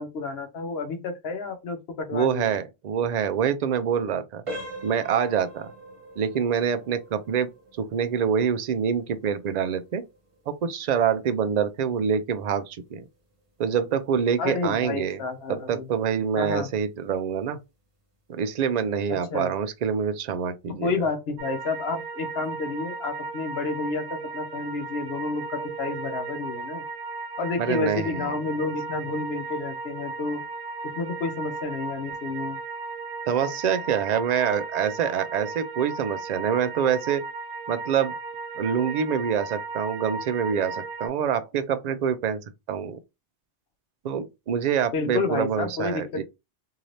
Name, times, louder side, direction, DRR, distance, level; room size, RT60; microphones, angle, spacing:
voice 1, 0.0-2.6 14.4-15.9 16.4-16.7 19.3-19.5 20.7-26.8 27.4-30.4 31.0-32.6 44.9-46.2, left 4 dB, 65° left, 1.0 m, -30 dB
voice 2, 2.1-4.4 4.8-5.7 6.2-7.5 7.8-10.0 10.5-13.0 13.6-15.2 15.5-17.6 18.3-20.9 27.6-28.3 33.3-37.2 37.7-38.1 38.6-43.0 44.0-46.2, right 7 dB, 60° right, 0.4 m, -26 dB
sound 1, 4.4-15.1 15.5-15.7 16.3-16.4 16.9-17.0, right 1 dB, 35° right, 0.8 m, -44 dB
sound 2, 21.4-41.1, right 4 dB, 90° right, 0.9 m, -35 dB
2.8 x 2.6 x 3.1 m
omnidirectional pair, 1.1 m